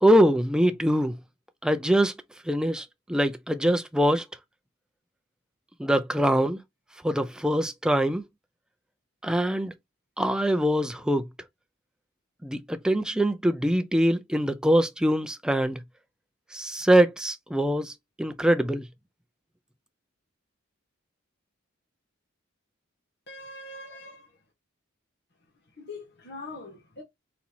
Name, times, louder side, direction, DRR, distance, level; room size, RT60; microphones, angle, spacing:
voice 1, 0.0-1.2 1.6-2.1 2.5-4.3 5.8-6.6 7.0-8.2 9.2-9.7 10.2-11.3 12.4-15.8 16.5-18.8, equal, 5° right, 0.4 m, -23 dB
voice 2, 23.3-24.4 25.6-27.0, left 2 dB, 50° left, 1.3 m, -43 dB
4.2 x 4.2 x 2.8 m
head